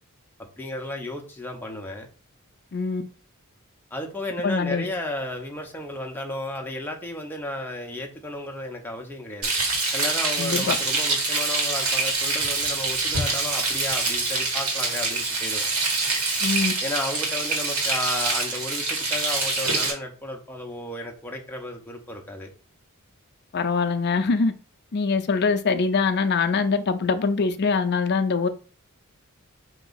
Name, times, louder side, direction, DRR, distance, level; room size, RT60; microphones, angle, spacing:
voice 1, 0.4-2.1 3.9-9.5 9.9-15.7 16.8-22.5, left 1 dB, 10° left, 0.7 m, -33 dB
voice 2, 2.7-3.0 4.4-4.9 10.4-10.8 16.4-16.7 23.5-24.5 24.9-28.5, left 4 dB, 50° left, 0.5 m, -23 dB
Frying (food), 9.4-19.9, right 3 dB, 80° right, 1.8 m, -25 dB
4.5 x 2.9 x 4.0 m
head